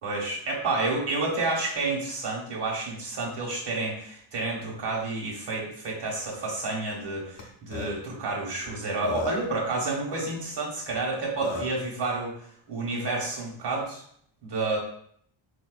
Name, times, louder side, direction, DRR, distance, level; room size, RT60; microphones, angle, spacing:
voice 1, 0.0-12.3 12.7-14.0 14.4-14.8, right 3 dB, 60° right, -2 dB, 1.2 m, -30 dB
Burping eructation, 7.4-7.5 7.7-7.9 8.7-8.8 9.0-9.5 10.9-11.0 11.4-11.8, left 2 dB, 65° left, 0.7 m, -32 dB
4.2 x 2.7 x 2.4 m, 0.65 s
wide cardioid pair, 145°, 48 cm